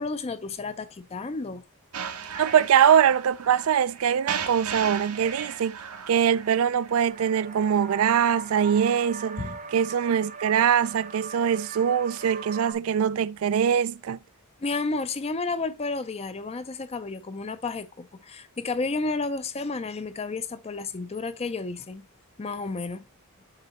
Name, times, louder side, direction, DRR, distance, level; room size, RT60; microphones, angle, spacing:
voice 1, 0.0-1.6 9.4-9.6 14.6-22.1 22.4-23.1, left 3 dB, 25° left, 0.4 m, -31 dB
sound 1, 1.9-6.9, right 7 dB, 85° right, 1.0 m, -36 dB
voice 2, 2.4-5.8 6.1-9.4 9.7-14.2, right 8 dB, 65° right, 0.3 m, -22 dB
sound 2, 7.1-12.7, right 5 dB, 35° right, 0.7 m, -40 dB
6.6 x 3.9 x 4.1 m
head